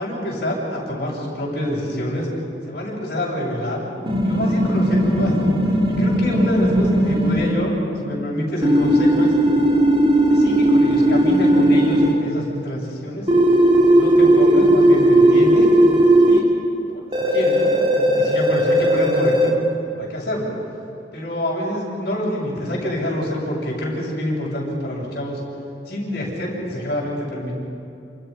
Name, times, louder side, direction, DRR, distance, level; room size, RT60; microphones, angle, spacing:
voice 1, 0.0-2.3 2.7-3.9 4.2-9.3 10.3-13.3 13.9-15.7 16.2-16.5 16.9-19.6 19.9-20.5 21.1-25.4 25.9-27.5, left 1 dB, 55° left, -7 dB, 7.6 m, -26 dB
sound 1, 4.1-7.5 8.6-12.1 13.3-16.4 17.1-19.5, right 1 dB, 30° right, 2.8 m, -16 dB
29.0 x 28.0 x 5.5 m, 2.6 s
head